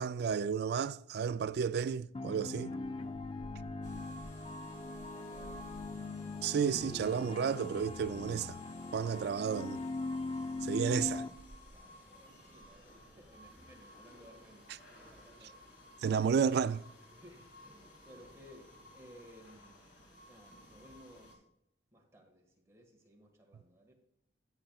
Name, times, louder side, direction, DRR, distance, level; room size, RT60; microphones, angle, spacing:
voice 1, 0.0-2.7 6.4-8.6 8.9-9.8 10.6-11.3 16.0-16.8, right 7 dB, 60° right, 0.3 m, -32 dB
sound 1, 2.1-11.3, left 3 dB, 30° left, 0.4 m, -41 dB
sound 2, 2.8-13.7, right 1 dB, 5° left, 2.5 m, -58 dB
sound 3, 3.8-21.3, equal, 75° left, 2.5 m, -55 dB
voice 2, 4.4-5.9 11.7-16.0 17.1-19.9 20.3-21.4 21.9-24.0, equal, 15° right, 1.8 m, -59 dB
11.5 x 8.8 x 2.4 m
head